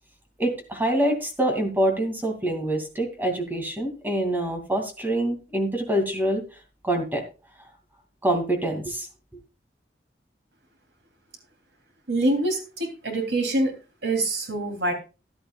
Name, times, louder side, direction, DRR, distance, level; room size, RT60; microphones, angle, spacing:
voice 1, 0.4-6.4 6.8-7.2 8.2-9.1, right 1 dB, 10° right, 3 dB, 2.5 m, -25 dB
voice 2, 12.1-13.7 14.0-14.9, right 2 dB, 90° right, 4 dB, 3.3 m, -25 dB
15.0 x 11.5 x 2.4 m, 0.31 s
head